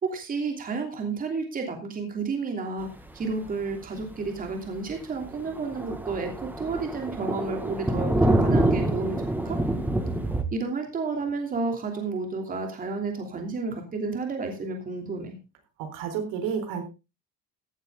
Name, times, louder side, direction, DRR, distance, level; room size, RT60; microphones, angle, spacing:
voice 1, 0.0-2.9 3.1-9.6 10.5-15.3, right 4 dB, 25° right, 3 dB, 3.0 m, -31 dB
Thunder, 3.5-3.6 4.0-4.1 4.5-4.6 4.9-5.0 5.2-10.4, right 1 dB, 5° right, 1.6 m, -26 dB
voice 2, 15.8-16.8, right 7 dB, 75° right, 6 dB, 3.9 m, -30 dB
16.0 x 9.1 x 3.7 m, 0.28 s
cardioid pair, 150°, 32 cm